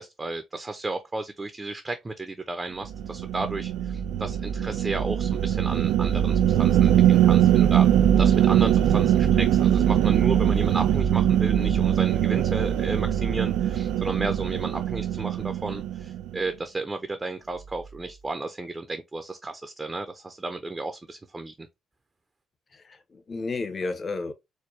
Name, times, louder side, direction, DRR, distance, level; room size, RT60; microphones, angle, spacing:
voice 1, 0.0-7.9 8.2-21.5, right 2 dB, 20° right, 0.6 m, -33 dB
sound 1, 2.8-16.4, right 10 dB, 90° right, 0.3 m, -22 dB
voice 2, 22.7-24.3, left 3 dB, 35° left, 0.9 m, -32 dB
4.4 x 2.2 x 3.2 m
cardioid pair, 90°, 0 cm